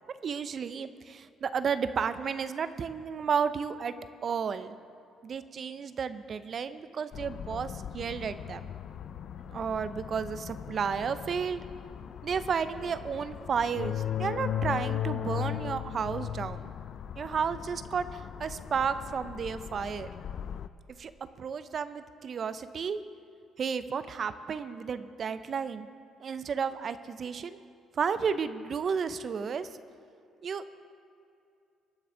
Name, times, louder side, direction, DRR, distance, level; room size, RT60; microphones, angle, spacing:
voice 1, 0.2-3.9 4.2-4.8 5.2-8.7 9.5-11.6 12.2-16.7 17.2-20.1 21.0-21.1 21.4-23.0 23.6-25.9 26.2-27.6 28.0-29.7 30.4-30.6, right 6 dB, 50° right, 12 dB, 0.7 m, -32 dB
sound 1, 7.1-20.7, left 10 dB, 60° left, 0.4 m, -38 dB
21.5 x 9.4 x 3.9 m, 2.5 s
hypercardioid pair, 55°, 0 cm